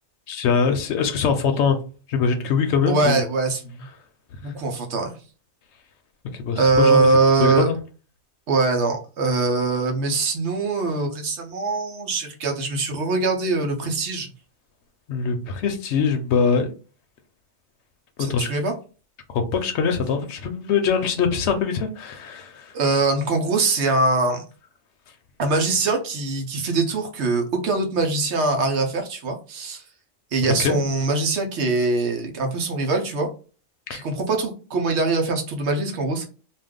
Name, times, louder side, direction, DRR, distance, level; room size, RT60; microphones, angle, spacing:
voice 1, 0.3-1.8 2.1-3.2 6.4-7.0 7.4-7.8 15.1-16.7 18.3-18.5 19.3-22.7 30.6-30.8 33.9-34.0, left 5 dB, 70° left, 6 dB, 0.8 m, -22 dB
voice 2, 2.9-3.9 4.4-5.2 6.5-7.7 8.5-14.3 18.2-18.7 22.7-24.4 25.4-29.8 30.3-33.3 33.9-36.3, right 3 dB, 65° right, 3 dB, 1.0 m, -22 dB
2.6 x 2.3 x 3.5 m, 0.35 s
omnidirectional pair, 1.3 m